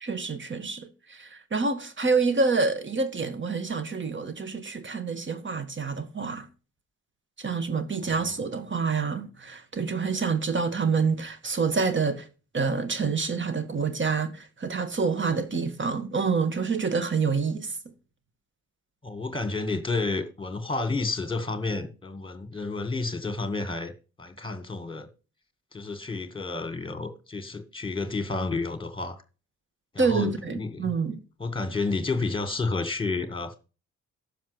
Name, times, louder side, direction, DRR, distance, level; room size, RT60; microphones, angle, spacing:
voice 1, 0.0-6.5 7.4-12.3 12.5-17.7 30.0-31.2, right 4 dB, 30° right, 1.5 m, -27 dB
voice 2, 19.0-23.9 24.2-25.1 25.7-29.2 29.9-30.9 31.4-33.6, left 3 dB, 10° left, 2.0 m, -30 dB
11.0 x 7.2 x 5.1 m
figure-of-eight pair, 45°, 40 cm